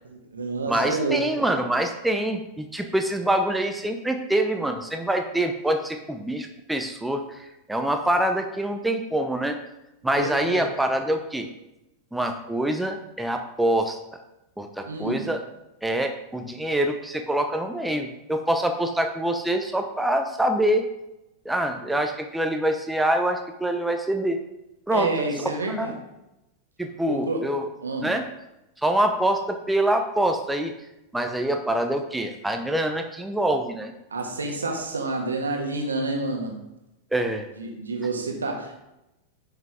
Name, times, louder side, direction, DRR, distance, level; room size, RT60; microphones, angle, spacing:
voice 1, 0.0-1.2 10.1-10.6 14.9-15.3 24.9-25.9 27.1-27.5 27.8-28.1 34.1-36.7 37.6-38.8, right 3 dB, 75° right, 2 dB, 1.6 m, -29 dB
voice 2, 0.7-9.6 10.0-11.5 12.1-14.0 14.6-15.4 15.8-20.9 21.4-24.4 24.9-25.3 25.8-25.9 26.8-27.7 28.0-28.2 28.8-30.7 31.1-33.9 37.1-37.5, right 1 dB, 5° right, 5 dB, 0.8 m, -25 dB
10.5 x 5.6 x 3.7 m, 0.92 s
figure-of-eight pair, 90°, 0 cm